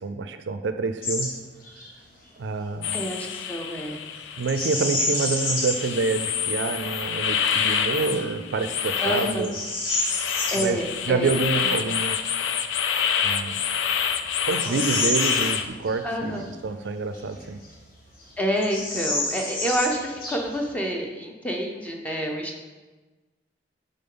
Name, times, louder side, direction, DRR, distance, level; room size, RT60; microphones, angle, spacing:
voice 1, 0.0-1.4 2.4-3.0 4.4-9.5 10.6-10.8 11.1-12.2 13.2-13.6 14.5-17.6, right 4 dB, 75° right, 9 dB, 0.4 m, -27 dB
Bird vocalization bird call bird song, 1.0-1.3 1.6-1.9 4.4-5.9 6.5-6.6 7.2-7.6 8.2-8.3 8.8-10.7 12.8-12.9 13.6-16.0 16.3-16.4 17.1-17.9 18.2-18.3 18.6-20.7, left 2 dB, 50° left, 1.2 m, -29 dB
sound 1, 2.8-15.7, left 7 dB, 90° left, 0.4 m, -27 dB
voice 2, 2.9-4.0 9.0-9.5 10.5-11.3 14.7-14.8 16.0-16.4 18.4-22.5, equal, 10° left, 1 dB, 0.7 m, -28 dB
7.7 x 3.7 x 3.8 m, 1.3 s
head